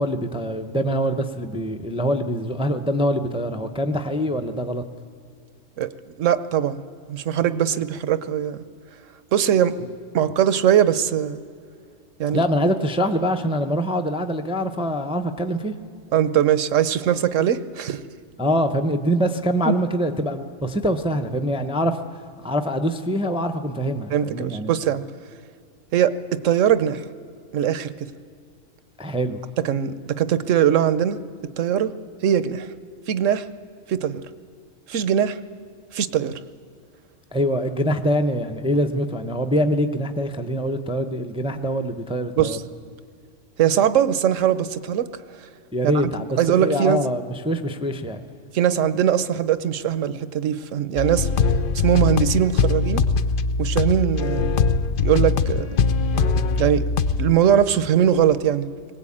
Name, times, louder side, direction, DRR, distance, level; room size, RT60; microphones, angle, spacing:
voice 1, 0.0-4.8 12.3-15.7 18.4-24.7 29.0-29.4 37.3-42.6 45.7-48.2, equal, 5° right, 6 dB, 0.6 m, -24 dB
voice 2, 6.2-6.8 7.1-8.6 9.3-9.7 10.1-11.4 12.2-12.4 16.1-18.0 19.6-19.7 24.1-25.0 25.9-27.0 27.5-27.9 29.6-31.2 31.6-31.9 32.2-32.7 33.1-33.4 33.9-34.2 34.9-35.4 35.9-36.4 42.4-42.6 43.6-45.1 45.8-45.9 46.4-47.0 48.5-51.3 51.7-53.0 53.6-54.6 55.0-55.7 56.6-56.8 57.2-58.7, right 9 dB, 75° right, 13 dB, 1.1 m, -21 dB
sound 1, 51.0-57.3, left 5 dB, 50° left, 0.7 m, -21 dB
20.5 x 18.0 x 8.7 m, 2.3 s
omnidirectional pair, 1.4 m